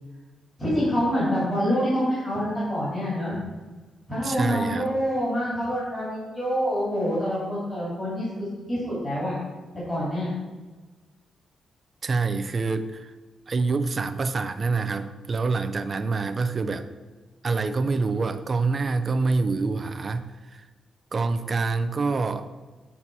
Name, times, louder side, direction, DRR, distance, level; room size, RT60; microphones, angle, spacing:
voice 1, 0.6-3.4 4.1-9.3 9.9-10.3, equal, 20° left, -8 dB, 2.6 m, -26 dB
voice 2, 4.2-4.9 12.0-13.1 13.5-16.9 17.4-20.7 21.1-22.5, right 4 dB, 30° right, 9 dB, 0.4 m, -26 dB
7.3 x 4.1 x 5.9 m, 1.3 s
wide cardioid pair, 165°, 0 cm